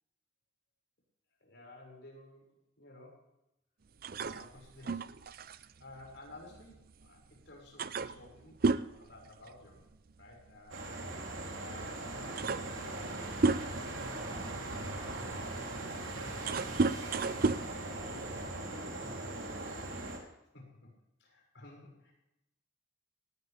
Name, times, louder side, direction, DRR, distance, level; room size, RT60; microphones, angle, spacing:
voice 1, 1.4-3.2 4.2-5.1 5.8-9.8 10.2-11.2 11.6-14.3 20.5-20.9 21.2-22.1, left 2 dB, 65° left, -1 dB, 6.4 m, -54 dB
sound 1, 4.0-7.1 7.4-7.5 7.8-10.0 10.2-10.5 11.5-11.6 12.0-14.0 14.6-18.7, right 3 dB, 45° right, 0.5 m, -33 dB
sound 2, 10.7-20.2, right 2 dB, 80° right, 3.6 m, -40 dB
voice 2, 15.2-19.2, left 2 dB, 45° left, -2 dB, 2.3 m, -56 dB
18.5 x 16.5 x 3.6 m, 0.85 s
head